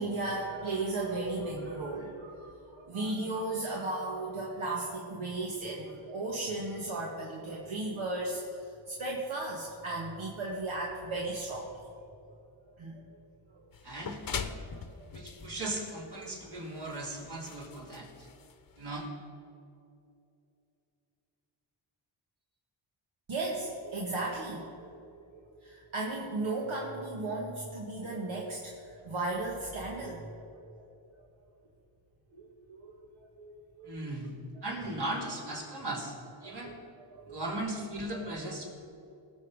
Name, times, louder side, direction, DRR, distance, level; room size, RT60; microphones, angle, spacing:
voice 1, 0.0-11.9 12.7-13.0 14.6-15.1 23.3-30.7 31.2-31.3 32.3-34.2 36.4-36.7 37.1-37.4 38.1-38.3, right 2 dB, 70° right, -3 dB, 1.9 m, -36 dB
sound 1, 13.7-19.1, left 6 dB, 45° left, 1.0 m, -42 dB
voice 2, 13.8-14.2 14.6-14.7 15.1-18.3 18.8-19.1 33.8-36.7 37.2-38.7, right 1 dB, 55° right, -2 dB, 3.4 m, -37 dB
18.5 x 7.1 x 4.9 m, 2.7 s
cardioid pair, 85°, 49 cm